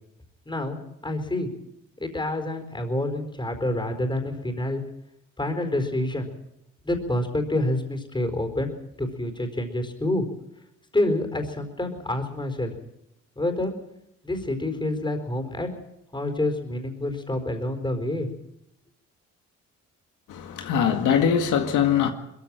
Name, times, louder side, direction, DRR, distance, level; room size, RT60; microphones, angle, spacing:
voice 1, 0.5-1.5 2.0-4.8 5.4-6.3 6.8-8.7 9.0-10.2 10.9-12.8 13.4-13.7 14.2-15.8 16.1-18.3, left 1 dB, 15° left, 4.5 m, -27 dB
voice 2, 20.3-22.1, left 8 dB, 85° left, 1.9 m, -22 dB
21.5 x 15.0 x 9.0 m
cardioid pair, 90°, 30 cm